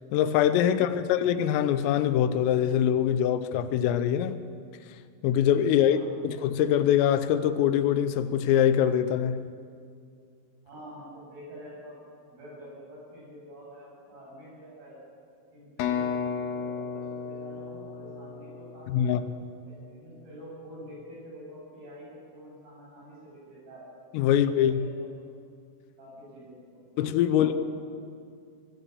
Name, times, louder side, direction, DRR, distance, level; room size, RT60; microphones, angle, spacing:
voice 1, 0.1-4.4 5.2-6.0 6.2-9.5 18.9-19.2 24.1-24.9 27.0-27.5, left 10 dB, 85° left, 3.5 m, -23 dB
voice 2, 0.7-1.2 5.8-6.1 10.6-12.0 12.3-15.0 15.5-19.3 19.6-23.9 24.3-25.1 26.0-26.8 27.3-27.6, equal, 45° right, 9.7 m, -47 dB
sound 1, 15.8-19.6, left 6 dB, 70° left, 2.3 m, -34 dB
22.5 x 20.0 x 6.9 m
omnidirectional pair, 5.9 m